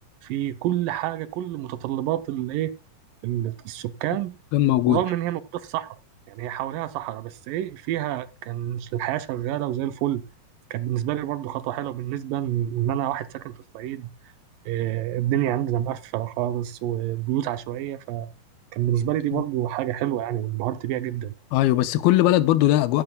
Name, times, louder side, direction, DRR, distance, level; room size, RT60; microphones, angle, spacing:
voice 1, 0.2-2.7 3.2-4.4 4.9-6.0 6.3-10.2 10.7-14.3 14.7-18.3 18.7-21.3, right 12 dB, 75° right, 2.2 m, -28 dB
voice 2, 4.5-5.0 21.5-23.0, left 14 dB, 85° left, 2.6 m, -19 dB
14.5 x 10.5 x 2.2 m
omnidirectional pair, 4.3 m